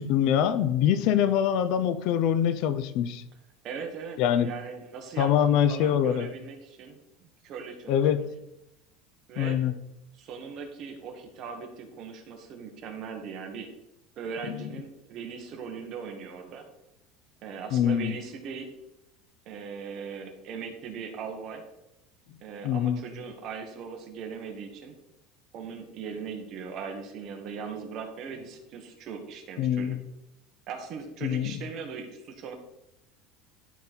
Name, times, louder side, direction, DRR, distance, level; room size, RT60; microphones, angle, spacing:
voice 1, 0.0-3.2 4.2-4.5 5.2-6.3 7.9-8.2 9.4-9.7 14.5-14.7 17.7-18.1 22.6-23.0 29.6-30.0 31.2-31.5, left 9 dB, 55° left, 12 dB, 0.6 m, -24 dB
voice 2, 3.6-7.0 7.4-8.3 9.3-9.6 10.1-13.7 14.2-16.7 17.4-18.7 19.4-21.6 22.4-24.9 25.5-30.0 30.7-32.5, right 6 dB, 40° right, 4 dB, 1.5 m, -39 dB
12.0 x 4.0 x 4.5 m, 0.87 s
cardioid pair, 155°, 0 cm